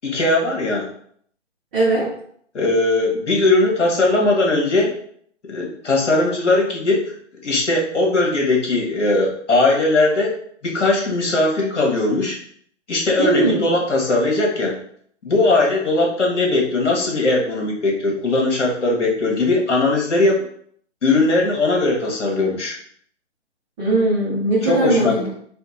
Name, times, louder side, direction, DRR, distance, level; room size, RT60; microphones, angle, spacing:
voice 1, 0.0-0.9 2.5-5.0 5.5-7.1 7.4-10.4 10.6-12.4 12.9-14.8 15.2-20.4 21.0-22.8 24.6-25.3, left 2 dB, 70° left, -1 dB, 1.6 m, -19 dB
voice 2, 1.7-2.1 13.2-13.7 23.8-25.2, right 2 dB, 10° right, -9 dB, 0.5 m, -19 dB
4.3 x 2.2 x 4.1 m, 0.62 s
figure-of-eight pair, 135°, 37 cm